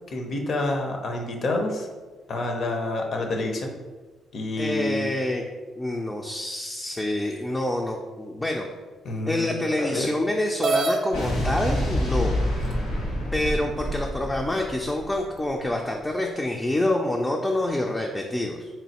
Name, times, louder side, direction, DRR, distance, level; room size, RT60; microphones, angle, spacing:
voice 1, 0.1-1.9 2.3-3.7 4.3-5.1 9.0-10.1, left 2 dB, 55° left, 3 dB, 0.6 m, -28 dB
voice 2, 4.6-5.5 5.8-8.7 9.3-12.4 13.3-18.7, left 1 dB, 15° left, 1 dB, 0.3 m, -27 dB
sound 1, 10.6-11.0 12.0-12.1 12.7-12.8 13.4-14.1, right 3 dB, 60° right, 0.4 m, -25 dB
Explosion, 11.1-15.5, equal, 85° left, 1.5 m, -27 dB
3.7 x 3.1 x 2.8 m, 1.3 s
cardioid pair, 90°, 0 cm